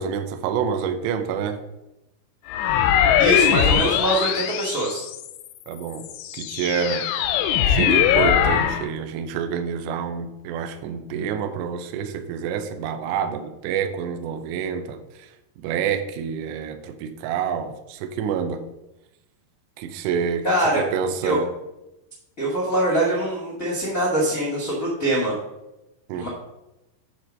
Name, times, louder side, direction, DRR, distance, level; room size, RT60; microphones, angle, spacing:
voice 1, 0.0-1.6 5.7-6.1 6.3-7.1 7.6-15.3 15.6-18.7 19.8-20.5 20.8-21.5 26.1-26.3, right 7 dB, 85° right, 7 dB, 2.5 m, -27 dB
sound 1, 2.5-5.4 6.0-8.9, left 9 dB, 85° left, 3.1 m, -21 dB
voice 2, 3.2-5.0 20.4-20.8 21.2-21.4 22.4-25.3 26.1-26.3, right 1 dB, 65° left, -5 dB, 0.8 m, -23 dB
8.3 x 4.2 x 6.3 m, 0.93 s
omnidirectional pair, 5.5 m